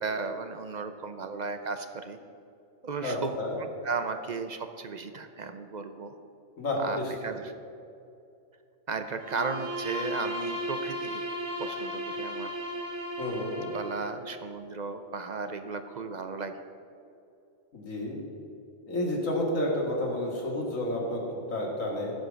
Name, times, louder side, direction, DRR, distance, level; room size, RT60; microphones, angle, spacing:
voice 1, 0.0-2.2 2.8-3.4 3.8-6.1 6.8-7.5 8.9-11.2 11.6-12.6 13.7-16.6, right 4 dB, 50° right, 8 dB, 0.5 m, -35 dB
voice 2, 3.0-3.5 6.6-7.0 13.2-13.7 17.7-18.2 18.9-22.1, left 1 dB, 75° left, -2 dB, 2.4 m, -30 dB
Bowed string instrument, 9.2-14.1, equal, 70° right, 2.5 m, -35 dB
15.5 x 5.2 x 6.3 m, 2.6 s
omnidirectional pair, 1.4 m